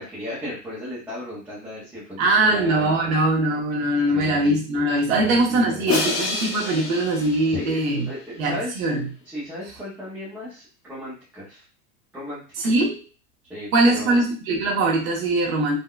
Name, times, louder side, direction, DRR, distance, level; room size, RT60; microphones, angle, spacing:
voice 1, 0.0-2.9 4.0-4.6 5.1-5.9 7.4-8.8 9.2-11.6 12.1-12.7 13.5-14.2, left 1 dB, 5° right, -11 dB, 0.5 m, -35 dB
voice 2, 2.2-8.1 8.4-9.0 12.6-13.0 13.7-15.8, right 2 dB, 75° right, -2 dB, 1.2 m, -21 dB
Crash cymbal, 5.9-8.1, left 3 dB, 50° left, 1.6 m, -28 dB
3.7 x 2.1 x 2.3 m, 0.35 s
supercardioid pair, 170°, 41 cm